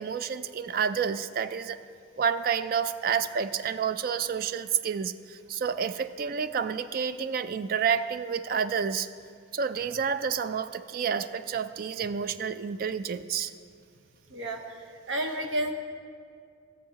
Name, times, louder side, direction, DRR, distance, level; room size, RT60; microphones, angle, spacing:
voice 1, 0.0-1.8 2.2-9.1 9.5-13.5, right 7 dB, 45° right, 12 dB, 0.3 m, -29 dB
voice 2, 14.3-14.6 15.1-15.7, right 1 dB, 75° right, 4 dB, 0.9 m, -30 dB
16.5 x 7.5 x 2.8 m, 2.3 s
head